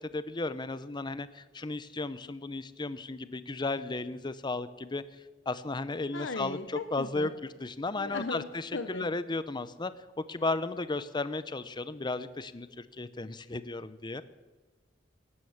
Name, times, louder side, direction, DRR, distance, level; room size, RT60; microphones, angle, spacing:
voice 1, 0.1-5.0 5.5-7.3 7.6-9.9 10.3-14.2, left 3 dB, 25° left, 14 dB, 0.6 m, -34 dB
voice 2, 6.1-7.3 8.0-9.1, left 3 dB, 70° left, 7 dB, 0.8 m, -37 dB
17.0 x 9.8 x 7.2 m, 1.3 s
head